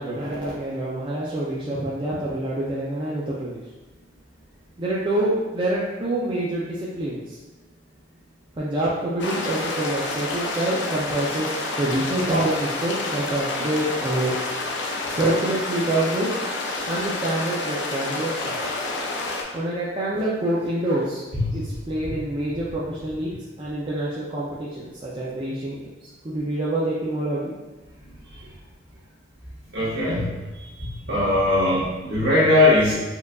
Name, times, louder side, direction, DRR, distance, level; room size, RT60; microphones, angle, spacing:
voice 1, 0.0-3.6 4.8-7.4 8.6-14.3 15.1-16.3 16.9-18.6 19.5-21.2 21.5-23.3 23.6-27.5, right 1 dB, 25° right, -7 dB, 0.4 m, -26 dB
sound 1, 9.2-19.4, left 2 dB, 60° left, 0.5 m, -29 dB
voice 2, 29.7-30.3 30.8-32.9, left 2 dB, 60° right, -8 dB, 1.4 m, -20 dB
4.4 x 2.4 x 2.3 m, 1.2 s
head